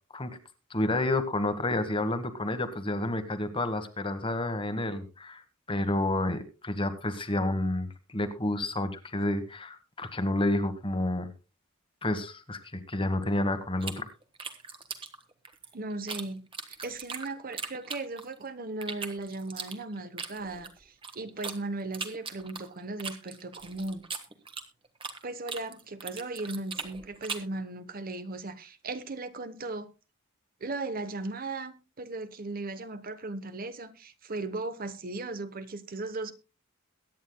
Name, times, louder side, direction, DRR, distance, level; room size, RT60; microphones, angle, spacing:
voice 1, 0.7-5.4 5.7-11.3 12.0-14.1, left 1 dB, 25° left, 1.3 m, -30 dB
sound 1, 13.8-16.2 16.5-18.4 18.8-21.6 21.9-25.2 25.5-27.5, right 5 dB, 25° right, 1.3 m, -39 dB
voice 2, 15.7-16.4 16.8-24.0 25.2-29.9 30.6-36.3, right 2 dB, 45° right, 0.9 m, -37 dB
22.5 x 9.3 x 2.2 m
head